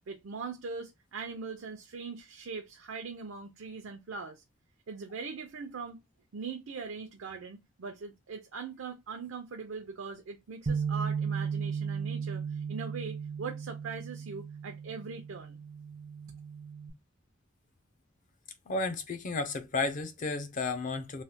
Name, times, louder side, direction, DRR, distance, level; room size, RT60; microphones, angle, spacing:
voice 1, 0.1-4.4 4.9-6.0 6.3-15.6, right 5 dB, 85° right, 0.5 m, -41 dB
Bass guitar, 10.7-16.9, right 6 dB, 30° right, 0.3 m, -35 dB
voice 2, 18.7-21.2, left 3 dB, 40° left, 0.5 m, -33 dB
3.1 x 2.1 x 2.7 m
head